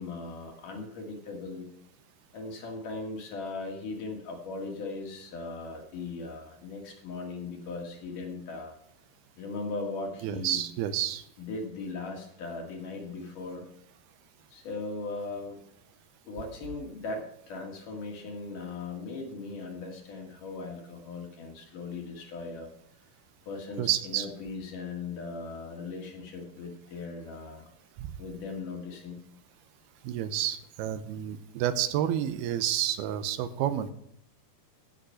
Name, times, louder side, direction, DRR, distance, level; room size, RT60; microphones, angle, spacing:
voice 1, 0.0-1.7 2.3-8.7 9.4-10.6 11.4-13.7 14.5-15.6 16.3-22.7 23.5-27.7 28.2-29.2, left 3 dB, 60° left, 1 dB, 3.4 m, -38 dB
voice 2, 10.2-11.2 23.8-24.3 28.0-28.1 30.0-33.9, right 11 dB, 85° right, 12 dB, 2.7 m, -30 dB
16.0 x 6.4 x 5.6 m, 0.73 s
omnidirectional pair, 4.5 m